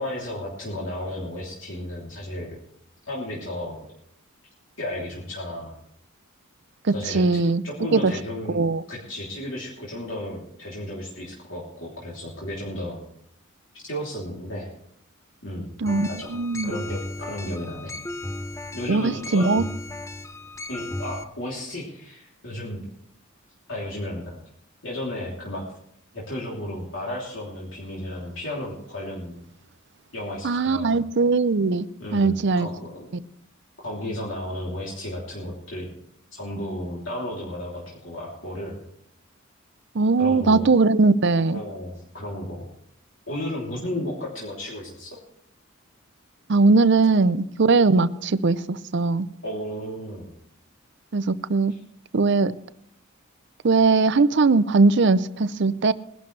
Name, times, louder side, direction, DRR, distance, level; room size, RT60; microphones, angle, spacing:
voice 1, 0.0-2.6 3.1-3.8 4.8-5.7 6.9-8.6 8.9-13.0 13.7-14.7 15.4-15.7 16.0-17.9 18.7-19.5 20.7-22.8 23.7-24.4 24.8-25.6 26.1-29.4 30.1-31.0 32.0-33.1 33.8-35.9 36.3-38.8 40.2-40.7 41.5-42.7 43.3-45.2 49.4-50.3 51.7-51.8, left 1 dB, 65° left, -5 dB, 3.2 m, -33 dB
voice 2, 6.9-7.6 7.9-8.1 8.5-8.8 15.8-16.7 18.9-19.6 30.4-32.7 39.9-41.6 46.5-49.3 51.1-51.7 52.1-52.5 53.6-55.9, right 3 dB, 55° right, 15 dB, 0.6 m, -20 dB
sound 1, 15.9-21.2, left 1 dB, 15° left, 0.5 m, -35 dB
21.0 x 11.5 x 3.3 m, 0.72 s
head